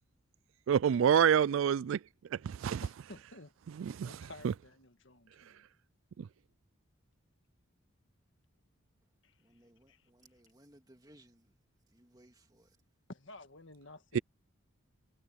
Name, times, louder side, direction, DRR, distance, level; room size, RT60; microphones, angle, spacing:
voice 1, 0.7-2.0 2.3-2.9 3.8-4.2 4.4-4.5 6.2-6.3 14.1-14.2, right 8 dB, 75° right, 0.3 m, -27 dB
voice 2, 2.8-3.5 4.0-5.7 9.2-9.3 9.9-10.0 13.1-14.2, left 2 dB, 65° left, 1.8 m, -52 dB
voice 3, 9.4-11.6 11.9-12.8, right 1 dB, 20° right, 2.2 m, -62 dB
head